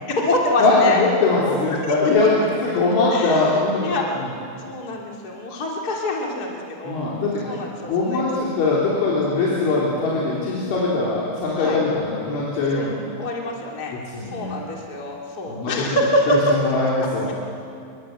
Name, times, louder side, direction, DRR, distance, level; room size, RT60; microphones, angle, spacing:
voice 1, 0.1-1.0 1.4-1.6 1.8-2.1 3.1-4.1 4.6-7.2 7.4-8.5 10.0-10.1 11.6-11.8 12.7-12.9 13.2-13.9 14.3-16.3, left 2 dB, 25° left, -1 dB, 2.4 m, -26 dB
voice 2, 0.6-4.3 6.8-7.5 7.9-13.0 14.1-14.5 15.5-15.7 16.3-17.3, left 3 dB, 65° left, -6 dB, 6.2 m, -21 dB
28.5 x 23.5 x 8.1 m, 2.4 s
omnidirectional pair, 5.9 m